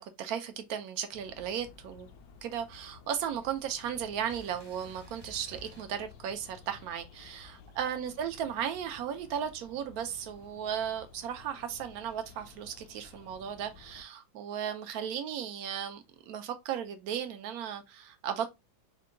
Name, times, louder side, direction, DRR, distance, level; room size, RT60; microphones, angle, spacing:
voice 1, 0.0-2.1 2.4-18.5, right 9 dB, 80° right, 0.8 m, -36 dB
sound 1, 1.1-14.0, left 6 dB, 70° left, 0.9 m, -55 dB
sound 2, 4.3-6.8 8.2-9.5, left 2 dB, 30° right, 0.5 m, -54 dB
4.7 x 2.2 x 3.6 m
omnidirectional pair, 2.2 m